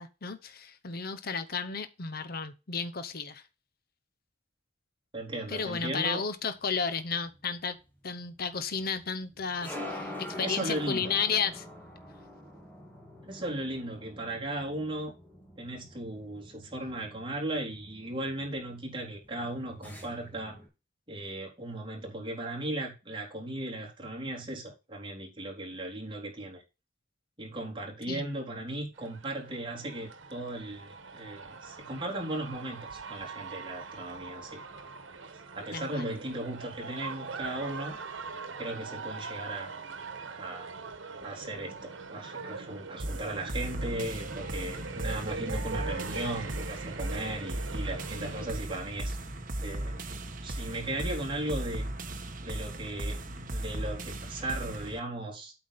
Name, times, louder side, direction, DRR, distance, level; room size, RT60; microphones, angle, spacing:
voice 1, 0.0-3.4 5.5-7.8 8.0-11.6 28.1-28.3 35.7-36.1, left 5 dB, 50° left, 0.8 m, -33 dB
voice 2, 5.1-6.2 10.4-11.2 13.2-15.1 15.6-20.6 21.1-26.6 27.4-34.6 35.5-38.0 38.6-39.7 40.4-40.7 41.2-49.2 49.6-51.9 52.4-55.5, right 1 dB, 25° right, 3.7 m, -37 dB
sound 1, 6.6-20.7, left 1 dB, 10° left, 2.2 m, -46 dB
sound 2, 29.0-48.5, right 4 dB, 80° right, 1.3 m, -42 dB
sound 3, 43.0-55.0, right 1 dB, 45° right, 1.2 m, -37 dB
8.6 x 5.9 x 4.1 m
head